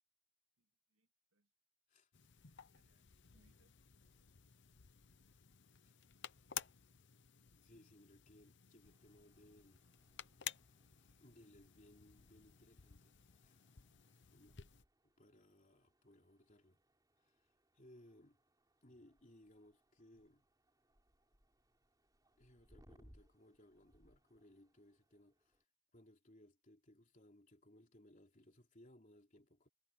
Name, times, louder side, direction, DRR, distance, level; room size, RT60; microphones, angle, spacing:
voice 1, 0.6-1.5 2.7-4.3, right 2 dB, 90° right, 2.3 m, -79 dB
sound 1, 2.1-14.8, left 10 dB, 60° left, 0.9 m, -54 dB
voice 2, 7.5-9.9 11.2-13.1 13.4-13.6 14.3-14.6 15.0-16.8 17.2-17.5 17.7-18.4 18.8-20.5 22.4-25.6 25.9-29.7, left 1 dB, 40° left, 3.4 m, -65 dB
sound 2, 8.8-25.6, equal, 20° right, 6.2 m, -72 dB
head